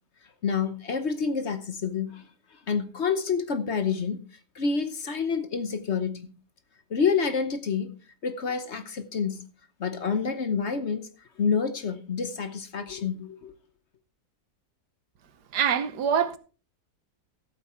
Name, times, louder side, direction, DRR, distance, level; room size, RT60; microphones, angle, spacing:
voice 1, 0.4-2.3 2.7-4.2 4.5-6.3 6.9-7.9 8.2-9.4 9.8-11.1 11.4-13.5, left 5 dB, 50° left, 1.1 m, -28 dB
voice 2, 15.5-16.4, right 8 dB, 85° right, 1.6 m, -24 dB
13.5 x 8.1 x 4.4 m
omnidirectional pair, 1.7 m